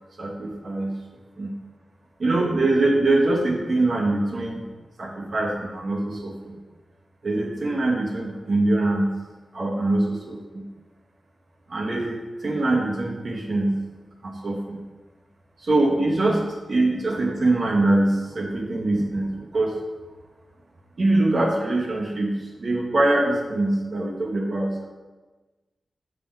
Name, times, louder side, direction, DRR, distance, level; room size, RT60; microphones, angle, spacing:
voice 1, 0.2-0.9 1.4-1.5 2.2-4.6 5.0-6.5 7.2-9.1 9.5-10.6 11.7-13.8 14.2-14.8 15.6-16.4 16.7-19.8 21.0-24.8, right 2 dB, 55° right, -1 dB, 1.1 m, -23 dB
5.8 x 3.7 x 5.9 m, 1.2 s
wide cardioid pair, 75°, 0 cm